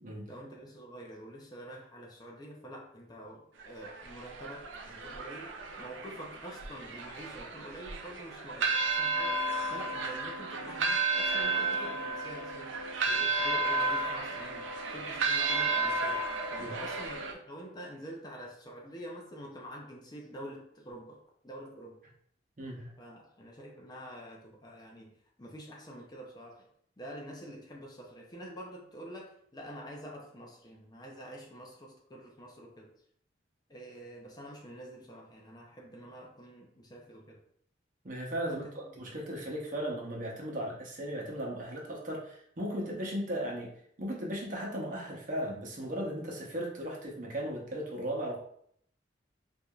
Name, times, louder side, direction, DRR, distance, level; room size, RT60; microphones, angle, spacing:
voice 1, 0.3-9.4 9.7-16.2 16.5-22.0 23.0-25.1 25.4-26.7 27.0-32.9 33.7-37.4 38.5-38.9, equal, 20° left, -1 dB, 0.5 m, -47 dB
sound 1, 3.6-17.3, right 3 dB, 85° right, 0.5 m, -32 dB
voice 2, 22.6-22.9 38.0-43.7 44.0-48.4, equal, 45° right, -2 dB, 0.8 m, -36 dB
4.6 x 2.6 x 2.4 m, 0.66 s
head